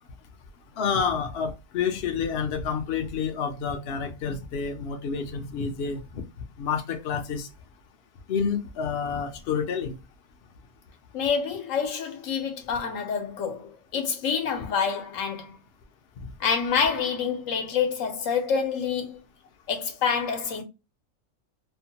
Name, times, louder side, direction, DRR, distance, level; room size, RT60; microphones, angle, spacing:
voice 1, 0.8-6.0 6.6-7.5 8.3-9.9, left 6 dB, 60° left, 0.8 m, -29 dB
voice 2, 11.1-15.6 16.4-19.2 19.7-20.6, left 6 dB, 75° left, 1.1 m, -27 dB
2.8 x 2.2 x 2.7 m
omnidirectional pair, 1.4 m